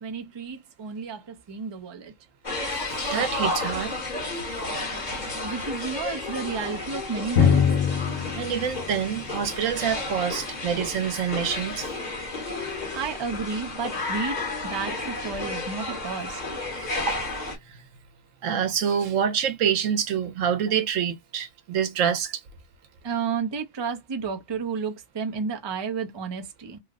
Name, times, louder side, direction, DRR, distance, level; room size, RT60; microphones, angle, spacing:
voice 1, 0.0-2.1 5.4-7.6 12.9-16.4 23.0-26.8, right 5 dB, 30° right, 0.5 m, -32 dB
sound 1, 2.4-17.5, left 2 dB, 35° left, 1.2 m, -32 dB
voice 2, 2.7-3.9 8.3-11.9 17.0-17.2 17.6-17.8 18.4-22.4, right 8 dB, 85° right, 1.1 m, -26 dB
Drum, 7.4-10.9, left 7 dB, 85° left, 1.3 m, -24 dB
3.1 x 2.1 x 3.6 m
omnidirectional pair, 1.3 m